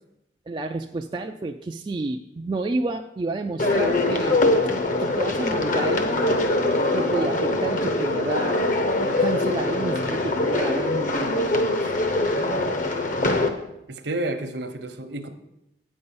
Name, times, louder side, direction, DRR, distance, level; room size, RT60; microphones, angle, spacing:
voice 1, 0.5-4.4 5.0-6.5 6.9-11.9, right 2 dB, 25° right, 3 dB, 0.3 m, -30 dB
sound 1, 3.6-13.5, left 2 dB, 40° left, 0.8 m, -23 dB
voice 2, 13.9-15.3, right 1 dB, 65° right, 7 dB, 0.9 m, -30 dB
8.7 x 5.4 x 7.0 m, 0.83 s
head